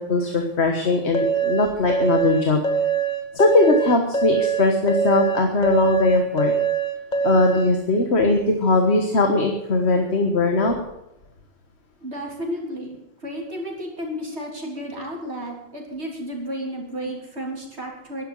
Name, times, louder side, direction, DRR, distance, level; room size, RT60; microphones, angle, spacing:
voice 1, 0.0-2.6 3.3-6.5 7.2-10.8, left 3 dB, 80° left, 4 dB, 1.8 m, -20 dB
sound 1, 1.1-7.7, right 6 dB, 40° left, 1.7 m, -23 dB
voice 2, 12.0-18.2, equal, 90° right, 0 dB, 3.7 m, -32 dB
11.5 x 11.0 x 7.8 m, 0.87 s
omnidirectional pair, 1.1 m